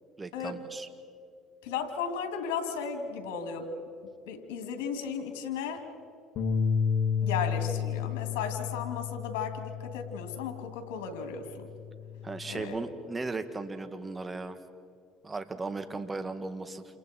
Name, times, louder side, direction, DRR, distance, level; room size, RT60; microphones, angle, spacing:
voice 1, 0.2-0.9 12.2-14.6 15.2-17.0, right 3 dB, 20° right, 9 dB, 2.0 m, -36 dB
voice 2, 1.6-3.7 4.3-5.9 7.2-11.7 12.5-12.8, left 6 dB, 90° left, 5 dB, 2.9 m, -35 dB
Bass guitar, 6.4-10.8 11.2-12.6, left 6 dB, 60° left, 2.4 m, -32 dB
29.0 x 28.5 x 4.6 m, 2.4 s
supercardioid pair, 85°, 0 cm